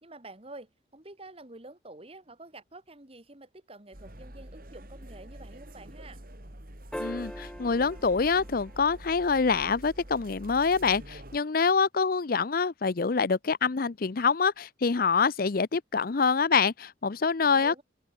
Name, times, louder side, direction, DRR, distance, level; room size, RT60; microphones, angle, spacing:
voice 1, 0.0-6.2 17.4-17.8, right 2 dB, 30° right, 2.3 m, -48 dB
sound 1, 3.9-11.4, right 1 dB, 50° right, 4.1 m, -46 dB
sound 2, 6.9-9.5 11.7-11.8, equal, 5° left, 1.2 m, -41 dB
voice 2, 7.0-17.8, left 5 dB, 50° left, 0.6 m, -26 dB
head